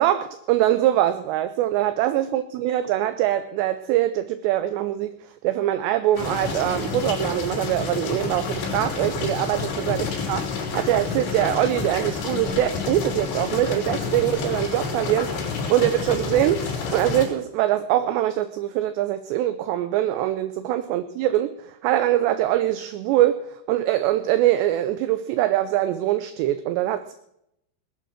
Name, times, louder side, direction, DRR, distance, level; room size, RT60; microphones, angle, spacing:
voice 1, 0.0-5.2 5.4-10.5 10.7-15.4 15.7-27.1, right 13 dB, 80° right, 12 dB, 2.6 m, -23 dB
sound 1, 6.2-17.3, left 5 dB, 70° left, 5.6 m, -29 dB
19.5 x 9.0 x 5.9 m, 0.77 s
omnidirectional pair, 5.5 m